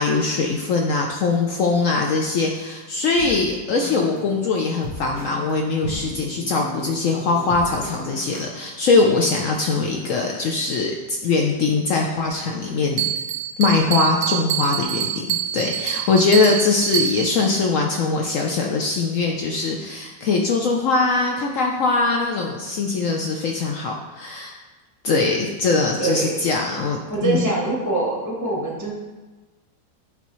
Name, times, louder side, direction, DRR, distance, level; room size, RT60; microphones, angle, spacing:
voice 1, 0.0-13.1 13.6-15.3 15.5-24.6 25.0-27.4, left 3 dB, 80° left, 0 dB, 0.7 m, -21 dB
sound 1, 3.2-8.5, left 2 dB, 60° left, 1.5 m, -36 dB
Bell, 13.0-17.5, right 11 dB, 70° right, 1.0 m, -26 dB
voice 2, 25.9-26.3 27.1-28.9, right 3 dB, 15° right, -3 dB, 0.6 m, -24 dB
9.0 x 4.3 x 3.0 m, 1.2 s
omnidirectional pair, 2.0 m